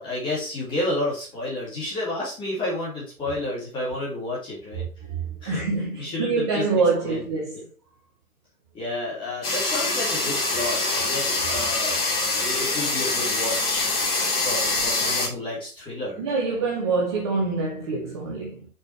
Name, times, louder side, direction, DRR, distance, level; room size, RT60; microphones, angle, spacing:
voice 1, 0.0-4.9 5.4-5.6 6.0-6.6 7.0-7.2 8.7-12.0 12.3-13.9 14.4-16.2, left 1 dB, 10° left, 2.6 m, -30 dB
voice 2, 5.0-7.6 16.2-18.7, right 4 dB, 20° right, 0.9 m, -25 dB
sound 1, 9.4-15.3, left 3 dB, 40° left, 3.4 m, -24 dB
6.3 x 6.0 x 4.5 m
figure-of-eight pair, 135°, 44 cm